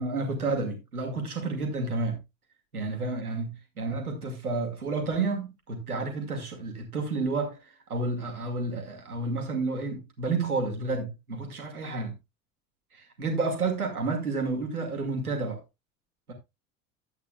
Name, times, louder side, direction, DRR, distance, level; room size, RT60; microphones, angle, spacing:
voice 1, 0.0-2.2 2.7-12.1 12.9-15.6 16.3-16.4, right 3 dB, 85° right, 1.9 m, -30 dB
12.5 x 8.2 x 2.3 m
figure-of-eight pair, 70°, 43 cm